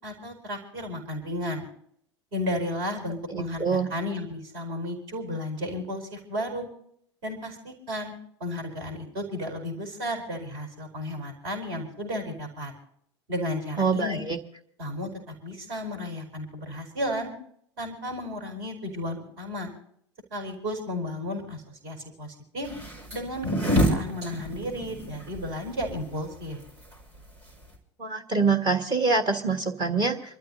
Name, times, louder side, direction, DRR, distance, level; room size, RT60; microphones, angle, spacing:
voice 1, 0.0-1.7 2.3-6.7 7.2-8.1 8.4-12.7 13.3-14.2 14.8-17.3 17.8-19.7 20.3-22.7 23.1-26.6, left 1 dB, 55° right, 4 dB, 4.5 m, -33 dB
voice 2, 3.3-3.9 13.8-14.4 28.0-30.4, right 4 dB, 30° right, 4 dB, 1.6 m, -25 dB
sound 1, 22.6-27.8, equal, 75° right, 5.3 m, -28 dB
28.5 x 13.0 x 2.7 m, 0.68 s
figure-of-eight pair, 80°, 15 cm